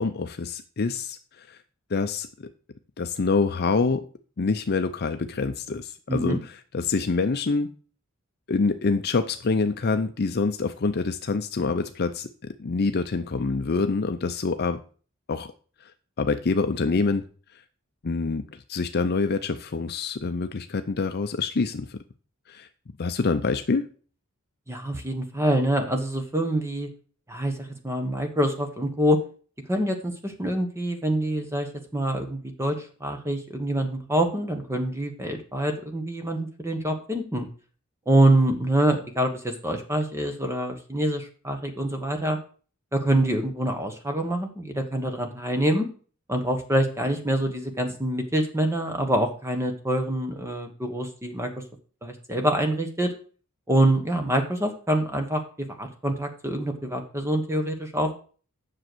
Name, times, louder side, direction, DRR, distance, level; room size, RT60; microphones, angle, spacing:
voice 1, 0.0-1.6 1.9-2.3 3.0-4.0 4.4-7.7 8.5-12.3 12.6-14.8 15.3-15.5 16.2-17.2 18.0-18.4 18.7-22.0 22.5-22.7 23.0-23.9, left 4 dB, 45° left, 9 dB, 0.5 m, -26 dB
voice 2, 6.1-6.4 24.7-26.9 27.3-29.2 29.7-37.5 38.1-42.4 42.9-45.9 46.3-51.5 52.0-53.1 53.7-58.1, right 1 dB, 10° right, 5 dB, 1.1 m, -25 dB
7.6 x 6.5 x 6.1 m, 0.40 s
head